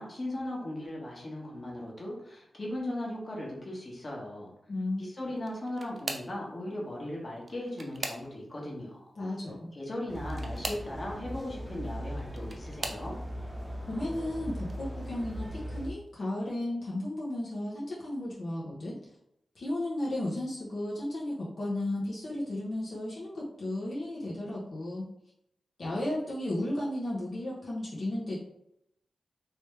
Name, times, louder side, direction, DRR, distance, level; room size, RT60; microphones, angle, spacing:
voice 1, 0.0-4.5 5.0-9.1 9.7-13.2, left 1 dB, 45° left, -3 dB, 1.3 m, -38 dB
voice 2, 4.7-5.0 9.2-9.7 13.9-19.0 19.5-25.1 25.8-28.4, left 1 dB, 70° left, -6 dB, 0.9 m, -34 dB
sound 1, 5.4-6.4 7.4-8.6 10.2-10.9 12.0-13.1 13.8-14.2 14.6-14.7 16.1-16.2, right 2 dB, 50° right, 0.6 m, -40 dB
sound 2, 10.1-15.9, equal, 5° right, 0.6 m, -39 dB
3.1 x 3.1 x 3.3 m, 0.77 s
cardioid pair, 70°, 0 cm